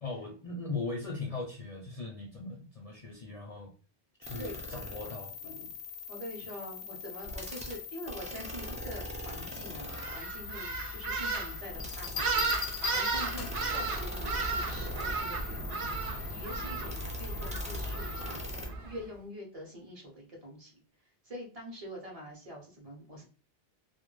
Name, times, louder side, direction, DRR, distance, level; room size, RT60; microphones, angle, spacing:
voice 1, 0.0-3.7 4.2-5.7 13.5-13.6, left 3 dB, 50° left, 0 dB, 0.4 m, -39 dB
sound 1, 4.2-18.7, left 3 dB, 10° right, 0.3 m, -41 dB
voice 2, 6.1-12.5 12.9-15.8 16.3-18.4 18.8-20.7 21.2-23.2, equal, 45° right, -1 dB, 0.6 m, -45 dB
sound 2, 9.9-19.0, right 3 dB, 80° right, 0.8 m, -35 dB
sound 3, 11.8-13.8 15.4-15.7, left 8 dB, 85° left, 0.8 m, -38 dB
2.2 x 2.1 x 3.0 m, 0.39 s
omnidirectional pair, 1.0 m